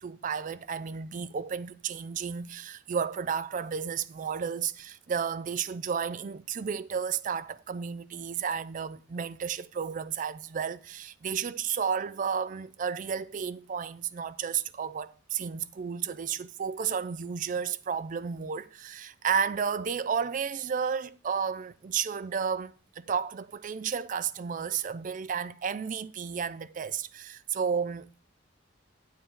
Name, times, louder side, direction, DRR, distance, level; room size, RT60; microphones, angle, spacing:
voice 1, 0.0-28.1, right 7 dB, 40° right, 0.4 m, -32 dB
9.4 x 7.9 x 3.7 m
head